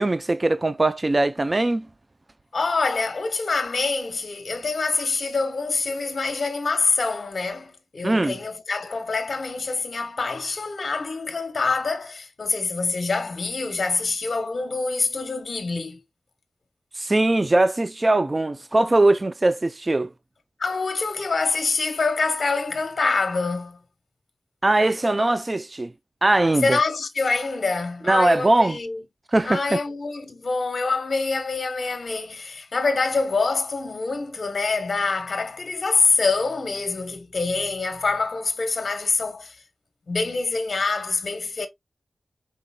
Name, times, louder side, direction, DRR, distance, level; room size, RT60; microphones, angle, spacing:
voice 1, 0.0-1.9 8.0-8.4 17.0-20.1 24.6-25.9 26.2-26.8 28.1-28.8 29.3-29.8, right 2 dB, 30° right, 0.4 m, -20 dB
voice 2, 2.5-16.0 20.6-23.8 26.6-29.0 29.4-39.6 40.1-41.7, left 4 dB, 60° left, 1.1 m, -25 dB
5.3 x 4.1 x 2.3 m
wide cardioid pair, 70°, 0 cm